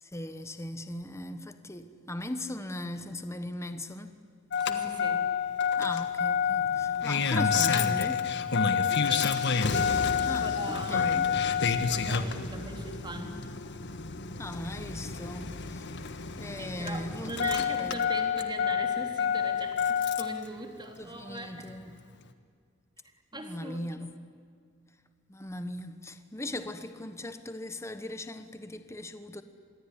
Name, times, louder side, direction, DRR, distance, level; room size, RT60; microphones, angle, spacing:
voice 1, 0.0-4.2 5.8-8.3 10.3-11.3 14.4-15.9 16.4-18.1 21.0-22.0 23.3-24.2 25.3-29.4, left 1 dB, 15° left, 1.2 m, -39 dB
Engine starting, 4.5-20.4 21.7-21.8, left 6 dB, 60° left, 1.5 m, -28 dB
voice 2, 4.5-5.3 8.6-9.4 10.2-11.1 11.9-13.4 16.6-21.7 23.3-24.1, right 2 dB, 20° right, 3.3 m, -41 dB
27.0 x 21.0 x 10.0 m
head